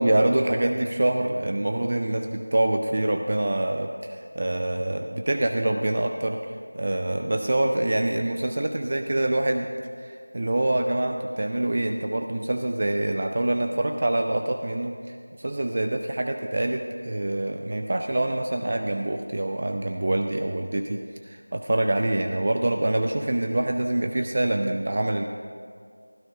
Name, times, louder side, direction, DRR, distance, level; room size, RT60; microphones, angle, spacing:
voice 1, 0.0-6.4 6.7-9.7 10.0-25.2, right 1 dB, 25° right, 4 dB, 0.5 m, -25 dB
16.0 x 12.0 x 5.0 m, 2.1 s
figure-of-eight pair, 175°, 0 cm